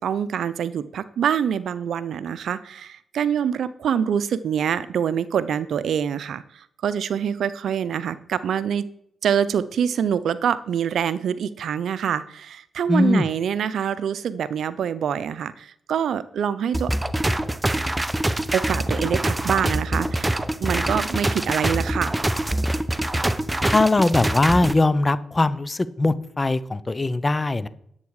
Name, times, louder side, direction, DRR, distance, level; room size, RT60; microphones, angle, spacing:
voice 1, 0.0-8.8 9.2-16.9 18.5-22.2, right 8 dB, 75° right, 16 dB, 0.6 m, -25 dB
voice 2, 12.9-13.3 23.6-27.7, left 2 dB, 30° left, 16 dB, 0.8 m, -20 dB
sound 1, 16.7-24.7, right 1 dB, 15° right, 0.9 m, -24 dB
11.0 x 8.1 x 4.8 m, 0.70 s
cardioid pair, 60°, 0 cm